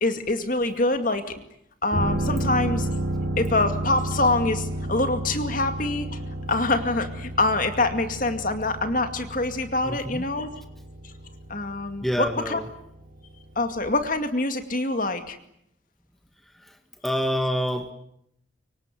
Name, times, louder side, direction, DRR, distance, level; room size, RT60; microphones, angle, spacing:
voice 1, 0.0-1.4 1.8-2.9 3.4-6.2 6.5-10.5 11.0-11.1 11.5-12.6 13.6-15.4, left 2 dB, 40° left, 8 dB, 2.3 m, -25 dB
sound 1, 1.9-13.5 13.8-13.9, right 1 dB, 70° right, 5.7 m, -31 dB
voice 2, 9.8-10.2 12.0-12.7 16.6-16.7 17.0-17.9, equal, ahead, 5 dB, 2.0 m, -27 dB
25.0 x 24.5 x 9.3 m, 0.76 s
head